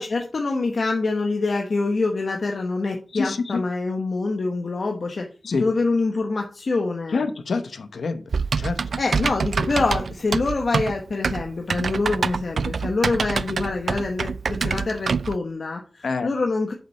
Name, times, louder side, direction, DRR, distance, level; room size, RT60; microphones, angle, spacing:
voice 1, 0.0-5.3 5.6-7.2 9.0-16.7, left 3 dB, 65° left, 2 dB, 1.1 m, -25 dB
voice 2, 3.1-3.6 5.4-5.6 7.1-8.2 8.6-8.8 13.3-13.4 16.0-16.3, left 4 dB, 90° left, 9 dB, 1.1 m, -26 dB
Typing, 8.3-15.4, right 5 dB, 80° right, 0.3 m, -26 dB
7.6 x 5.4 x 5.7 m, 0.38 s
wide cardioid pair, 85°, 0 cm